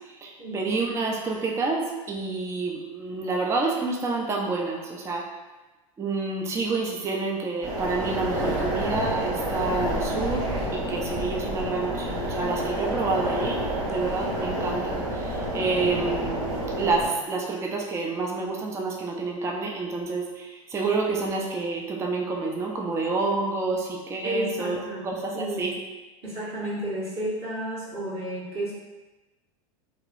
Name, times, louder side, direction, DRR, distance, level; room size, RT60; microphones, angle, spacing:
voice 1, 0.2-5.2 6.0-13.6 13.9-24.8 25.0-25.7, right 3 dB, 15° right, 0 dB, 0.4 m, -28 dB
sound 1, 7.6-17.1, right 1 dB, 60° right, 1.4 m, -29 dB
voice 2, 24.2-25.7 26.2-28.7, right 1 dB, 35° right, -7 dB, 1.1 m, -32 dB
2.9 x 2.9 x 2.4 m, 1.1 s
hypercardioid pair, 95°, 18 cm